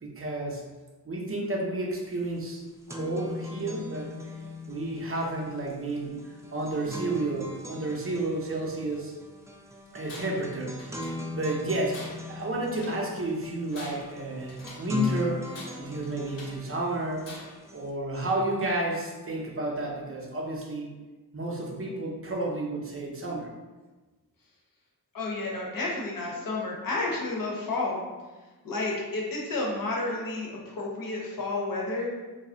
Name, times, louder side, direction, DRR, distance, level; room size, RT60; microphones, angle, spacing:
voice 1, 0.0-0.7 1.0-2.6 2.9-4.1 4.7-9.1 9.9-17.3 17.7-20.9 21.3-23.5, right 1 dB, 30° right, -2 dB, 0.7 m, -31 dB
sound 1, 2.4-17.9, left 1 dB, 10° right, 0.3 m, -40 dB
Tools, 10.0-10.5 10.8-11.5 11.9-13.1 13.6-15.0 15.5-16.7 17.2-17.7, left 2 dB, 85° left, 0.7 m, -46 dB
voice 2, 25.1-28.0 28.6-32.1, left 2 dB, 55° left, -2 dB, 0.9 m, -31 dB
2.3 x 2.1 x 3.7 m, 1.2 s
cardioid pair, 50°, 41 cm